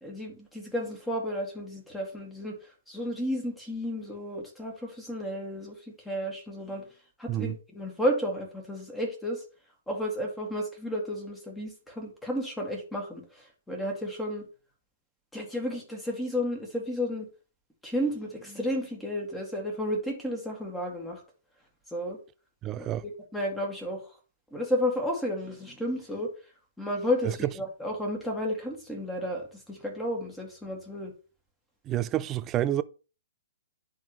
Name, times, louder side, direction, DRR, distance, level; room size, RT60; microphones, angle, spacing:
voice 1, 0.0-6.9 7.2-9.4 9.9-14.5 15.3-17.3 17.8-21.2 21.9-22.2 22.8-24.1 24.5-26.3 26.8-31.1, equal, 5° left, 2.0 m, -32 dB
voice 2, 22.6-23.0 31.9-32.8, right 12 dB, 25° right, 0.4 m, -28 dB
10.5 x 3.8 x 3.1 m
hypercardioid pair, 135°, 0 cm